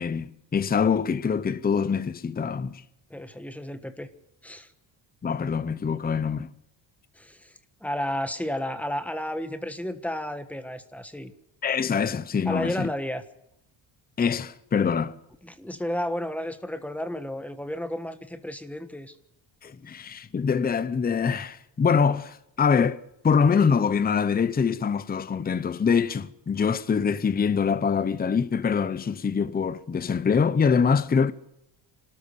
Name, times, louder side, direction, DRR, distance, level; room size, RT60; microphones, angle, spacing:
voice 1, 0.0-2.8 5.2-6.5 11.6-12.9 14.2-15.2 19.6-23.0 23.2-31.3, left 6 dB, 20° left, 0.7 m, -24 dB
voice 2, 3.1-4.1 4.4-4.7 7.1-11.3 12.4-13.2 15.4-19.2, left 1 dB, 5° left, 1.4 m, -32 dB
28.5 x 13.5 x 6.8 m
cardioid pair, 165°, 49 cm